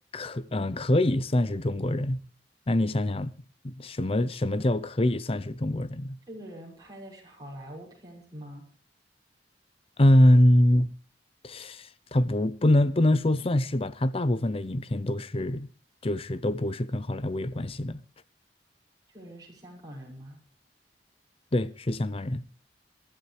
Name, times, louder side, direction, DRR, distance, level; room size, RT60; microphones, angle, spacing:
voice 1, 0.1-2.2 2.7-3.3 3.6-6.2 10.0-10.9 11.4-15.7 16.0-18.0 21.5-22.4, left 1 dB, 35° left, 0.7 m, -24 dB
voice 2, 6.3-8.6 19.1-20.4, equal, 20° right, 6.5 m, -44 dB
27.5 x 12.5 x 3.3 m
head